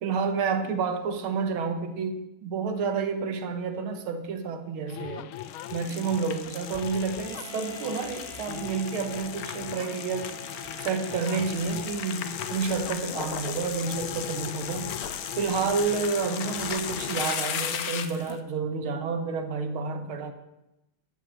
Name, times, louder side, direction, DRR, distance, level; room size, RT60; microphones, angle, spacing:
voice 1, 0.0-5.3 5.7-10.4 10.8-15.0 15.4-20.3, right 5 dB, 85° right, 7 dB, 2.0 m, -30 dB
sound 1, 4.9-18.4, left 13 dB, 80° left, 1.4 m, -42 dB
sound 2, 5.3-18.3, left 8 dB, 60° left, 1.0 m, -36 dB
Wind instrument woodwind instrument, 7.2-12.2, right 11 dB, 65° right, 1.6 m, -49 dB
13.5 x 5.3 x 7.8 m, 0.91 s
omnidirectional pair, 2.3 m